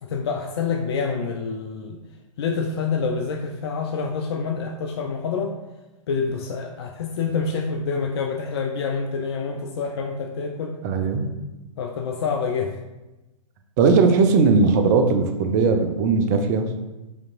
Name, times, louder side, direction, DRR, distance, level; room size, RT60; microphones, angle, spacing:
voice 1, 0.0-2.0 2.4-5.5 6.1-10.7 11.8-12.7, left 5 dB, 50° left, 2 dB, 0.4 m, -27 dB
voice 2, 10.8-11.3 13.8-16.7, right 4 dB, 30° right, 6 dB, 0.4 m, -18 dB
5.0 x 2.9 x 2.5 m, 1.1 s
figure-of-eight pair, 110°, 18 cm